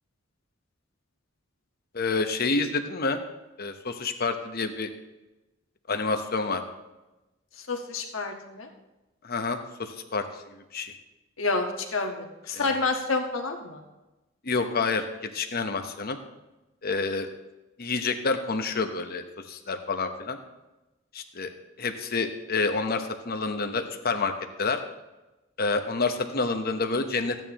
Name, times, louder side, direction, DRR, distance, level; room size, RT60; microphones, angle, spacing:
voice 1, 1.9-3.2 3.6-4.9 5.9-6.6 9.2-10.2 10.7-10.9 12.5-12.7 14.4-16.2 16.8-17.3 17.8-20.4 21.1-21.5 21.8-24.3 24.6-24.8 25.6-27.4, left 4 dB, 50° left, 6 dB, 1.0 m, -28 dB
voice 2, 7.7-8.7 11.4-13.8, left 3 dB, 75° left, 2 dB, 1.5 m, -29 dB
14.5 x 9.1 x 3.0 m, 1.0 s
head